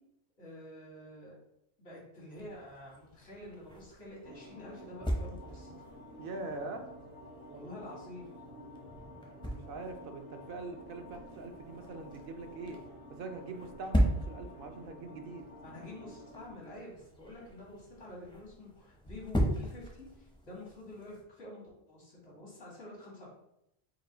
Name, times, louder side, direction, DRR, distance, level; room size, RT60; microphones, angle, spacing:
voice 1, 0.4-1.4 1.8-5.7 7.5-8.3 15.6-23.3, left 1 dB, 90° left, -4 dB, 1.8 m, -48 dB
sound 1, 2.3-21.2, equal, 5° left, 0.4 m, -39 dB
sound 2, 4.2-16.5, equal, 80° right, 2.0 m, -51 dB
voice 2, 6.2-6.9 9.4-12.8 13.1-15.5, right 3 dB, 65° right, 5 dB, 0.7 m, -43 dB
4.7 x 2.2 x 3.7 m, 0.79 s
omnidirectional pair, 1.1 m